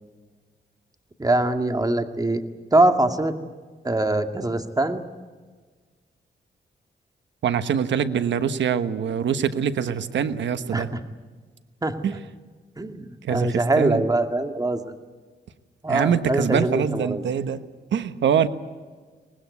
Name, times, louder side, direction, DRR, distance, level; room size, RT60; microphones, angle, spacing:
voice 1, 1.2-2.4 2.7-3.3 3.8-5.0 10.7-11.0 11.8-12.0 12.8-14.9 15.8-17.2, right 2 dB, 20° right, 7 dB, 2.2 m, -23 dB
voice 2, 7.4-10.9 12.0-12.1 13.2-14.0 15.9-17.6 17.9-18.5, right 8 dB, 90° right, 11 dB, 1.3 m, -24 dB
24.0 x 19.5 x 9.6 m, 1.4 s
cardioid pair, 80°, 18 cm